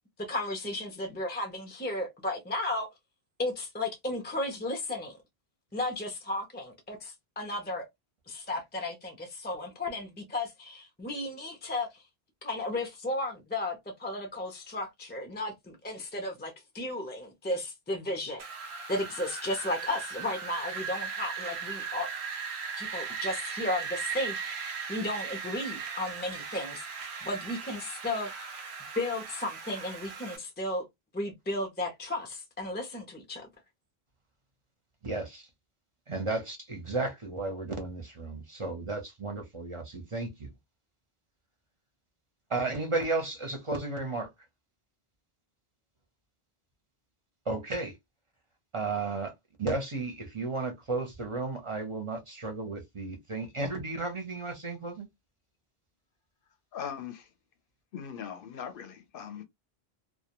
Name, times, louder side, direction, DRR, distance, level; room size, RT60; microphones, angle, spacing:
voice 1, 0.2-2.9 3.4-5.2 5.7-7.9 8.3-12.0 12.4-18.4 18.9-22.1 22.8-26.8 27.2-28.3 28.9-30.9 31.1-33.5, left 1 dB, 15° left, 0.3 m, -34 dB
Wind, 18.4-30.4, right 6 dB, 85° right, 0.8 m, -38 dB
voice 2, 35.0-35.5 36.1-40.5 42.5-44.3 47.5-48.0 48.7-49.3 49.6-55.1, right 3 dB, 40° right, 0.5 m, -33 dB
voice 3, 56.7-57.3 57.9-59.4, left 8 dB, 65° left, 0.7 m, -40 dB
2.2 x 2.1 x 2.8 m
omnidirectional pair, 1.0 m